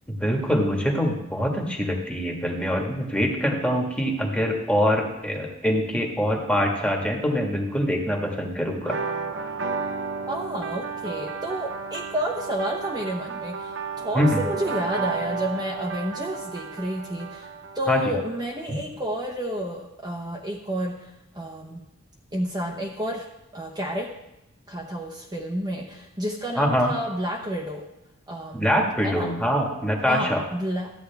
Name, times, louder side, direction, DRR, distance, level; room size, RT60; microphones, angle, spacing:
voice 1, 0.1-9.0 14.1-14.4 17.9-18.0 26.6-26.9 28.5-30.4, equal, 5° left, 0 dB, 1.6 m, -24 dB
sound 1, 8.8-18.4, right 4 dB, 65° right, 1.0 m, -32 dB
voice 2, 10.3-17.5 17.7-21.8 22.3-23.3 23.5-24.1 24.7-27.9 28.3-28.7 29.0-29.3 30.1-30.9, equal, 20° right, -2 dB, 0.9 m, -30 dB
13.5 x 9.2 x 3.5 m, 0.91 s
head